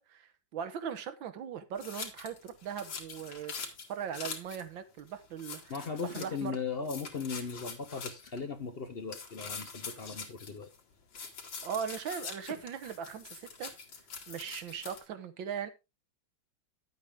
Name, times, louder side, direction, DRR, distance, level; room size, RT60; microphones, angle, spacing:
voice 1, 0.0-3.6 3.9-6.6 11.6-13.7 14.3-15.7, right 8 dB, 90° right, 1.8 m, -39 dB
sound 1, 1.8-4.6 5.0-5.1 5.4-6.6 6.8-8.4 9.1-10.8 11.1-15.0, left 5 dB, 85° left, 2.6 m, -44 dB
voice 2, 5.7-10.7, left 5 dB, 50° left, 0.7 m, -38 dB
10.5 x 8.1 x 3.6 m
omnidirectional pair, 2.0 m